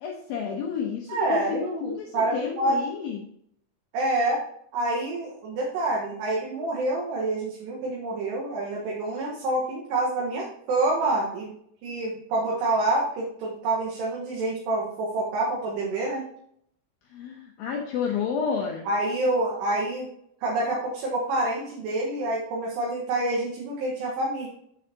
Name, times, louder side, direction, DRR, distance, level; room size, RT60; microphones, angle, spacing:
voice 1, 0.0-3.2 17.1-18.9, left 6 dB, 80° left, 0 dB, 2.1 m, -30 dB
voice 2, 1.1-2.8 3.9-4.4 4.7-11.5 11.8-16.2 18.9-20.1 20.4-24.5, right 2 dB, 70° right, -3 dB, 3.2 m, -27 dB
9.7 x 6.8 x 2.9 m, 0.70 s
omnidirectional pair, 5.5 m